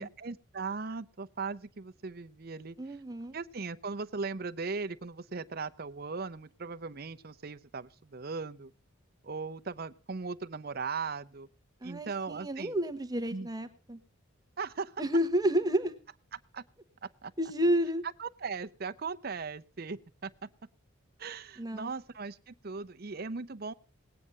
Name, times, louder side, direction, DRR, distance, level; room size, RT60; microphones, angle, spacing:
voice 1, 0.0-2.8 3.3-8.7 9.2-11.5 11.8-12.8 13.3-13.5 14.6-14.9 16.3-16.6 17.0-17.3 18.2-20.5 21.2-23.7, right 4 dB, 45° right, 0.7 m, -38 dB
voice 2, 2.8-3.4 11.8-14.0 15.0-16.0 17.4-18.0 21.6-21.9, equal, 20° right, 1.1 m, -30 dB
18.5 x 9.3 x 5.4 m
head